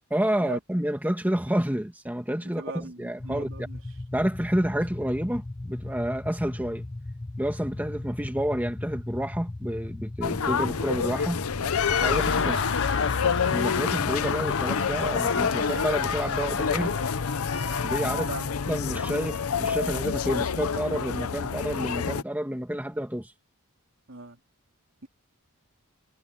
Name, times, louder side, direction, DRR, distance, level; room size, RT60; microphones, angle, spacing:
voice 1, 0.1-3.5 4.1-6.8 7.4-11.5 12.0-12.9 13.5-17.0 17.8-18.3 18.7-23.3, equal, 10° right, 1.9 m, -29 dB
voice 2, 2.6-3.8 12.0-12.6 18.1-18.5 24.1-24.4, right 3 dB, 65° right, 3.8 m, -39 dB
sound 1, 3.2-19.6, left 2 dB, 20° left, 0.5 m, -38 dB
sound 2, 10.2-22.2, left 6 dB, 90° left, 0.7 m, -28 dB
Laughter, 11.6-18.4, left 6 dB, 60° left, 1.4 m, -32 dB
head